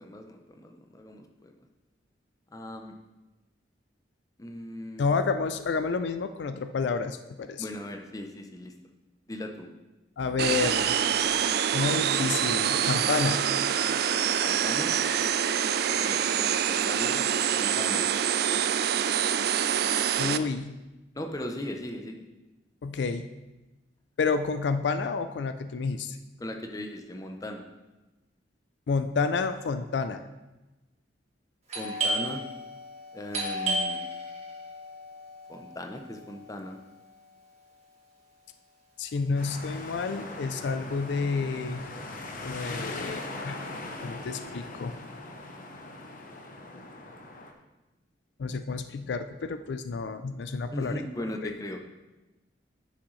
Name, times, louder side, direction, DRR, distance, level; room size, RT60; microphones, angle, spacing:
voice 1, 0.0-1.5 2.5-3.0 4.4-5.0 7.6-8.7 9.3-9.7 14.4-14.9 15.9-17.2 17.5-18.0 21.1-22.2 26.4-27.6 31.7-32.4 33.1-34.0 35.5-36.8 50.7-51.8, left 1 dB, 20° left, 4 dB, 0.7 m, -38 dB
voice 2, 5.0-7.7 10.2-11.0 11.7-13.4 20.2-20.8 22.8-23.3 24.2-26.2 28.9-30.3 39.0-41.8 42.4-43.6 44.0-45.0 48.4-51.0 51.4-51.5, left 4 dB, 70° left, 10 dB, 0.4 m, -30 dB
sound 1, 10.4-20.4, right 8 dB, 60° right, 0.4 m, -26 dB
Doorbell, 31.7-37.1, right 1 dB, 40° right, 1.9 m, -34 dB
sound 2, 39.3-47.5, left 2 dB, 50° left, 0.9 m, -40 dB
9.8 x 6.2 x 3.2 m, 1.1 s
head